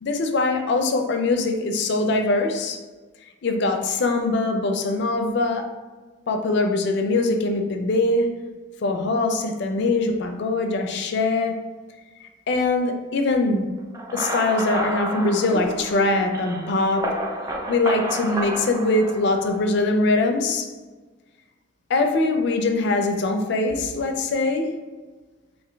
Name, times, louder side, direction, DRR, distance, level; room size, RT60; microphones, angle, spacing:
voice 1, 0.0-2.8 3.4-5.7 6.3-8.3 8.8-11.6 12.5-13.7 14.1-17.2 17.7-20.7 21.9-24.7, left 2 dB, 60° left, 5 dB, 0.4 m, -22 dB
sound 1, 13.9-19.7, right 1 dB, 20° right, 0.4 m, -31 dB
3.8 x 2.5 x 3.3 m, 1.3 s
head